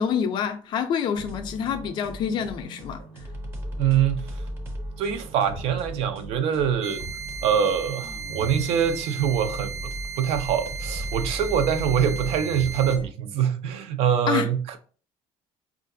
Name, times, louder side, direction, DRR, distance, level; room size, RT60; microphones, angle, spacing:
voice 1, 0.0-3.0 14.3-14.5, left 7 dB, 45° left, 0.4 m, -27 dB
sound 1, 1.1-13.1, equal, 20° right, 0.6 m, -37 dB
voice 2, 3.8-4.4 5.0-7.0 7.4-14.8, right 8 dB, 65° right, 0.5 m, -24 dB
sound 2, 6.8-13.0, right 6 dB, 85° right, 0.9 m, -36 dB
4.5 x 2.4 x 2.6 m
cardioid pair, 170°, 11 cm